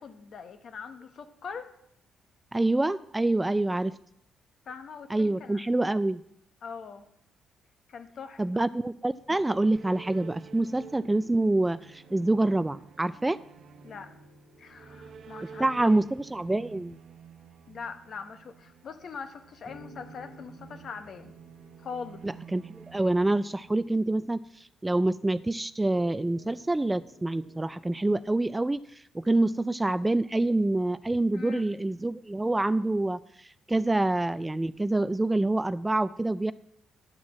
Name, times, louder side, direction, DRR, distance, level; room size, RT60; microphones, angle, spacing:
voice 1, 0.0-1.7 4.7-5.6 6.6-7.1 7.9-8.6 13.8-14.1 14.6-16.0 17.7-21.3 21.8-22.2 31.3-31.6, left 5 dB, 55° left, 8 dB, 1.1 m, -42 dB
voice 2, 2.5-3.9 5.1-6.2 8.4-13.4 15.4-17.0 22.2-24.4 24.8-28.8 29.1-33.2 33.7-36.5, right 2 dB, 15° right, 16 dB, 0.3 m, -26 dB
sound 1, 9.1-24.3, right 6 dB, 60° right, 0.9 m, -50 dB
sound 2, 13.8-16.4 19.6-24.3 25.9-28.5, equal, 75° left, 1.8 m, -55 dB
11.0 x 4.6 x 7.3 m, 0.74 s
cardioid pair, 90°, 0 cm